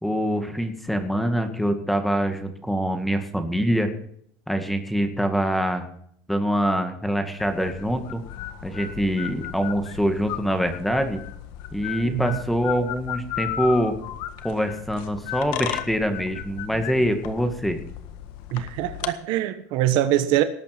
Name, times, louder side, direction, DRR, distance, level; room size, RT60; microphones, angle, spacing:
voice 1, 0.0-3.9 4.5-5.9 6.3-8.2 8.6-11.2 11.7-14.0 14.4-17.8, equal, ahead, 2.1 m, -24 dB
sound 1, 7.4-19.1, left 11 dB, 65° left, 1.7 m, -35 dB
voice 2, 12.0-12.4 18.5-20.4, right 13 dB, 60° right, 1.3 m, -23 dB
19.0 x 8.5 x 6.0 m
cardioid pair, 145°, 9 cm